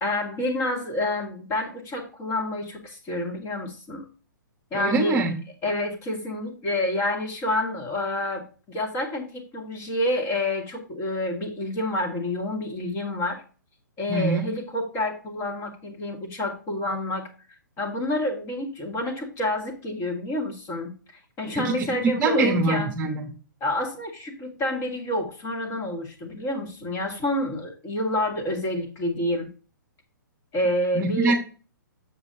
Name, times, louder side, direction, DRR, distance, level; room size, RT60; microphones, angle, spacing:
voice 1, 0.0-4.1 4.7-5.2 5.6-13.4 14.0-17.3 17.8-20.9 21.4-22.9 23.6-29.5 30.5-31.4, left 1 dB, 25° left, 2 dB, 2.2 m, -28 dB
voice 2, 4.7-5.3 14.1-14.5 21.5-23.3 30.9-31.4, right 2 dB, 20° right, 2 dB, 1.2 m, -24 dB
8.0 x 7.1 x 2.7 m, 0.36 s
figure-of-eight pair, 130°, 11 cm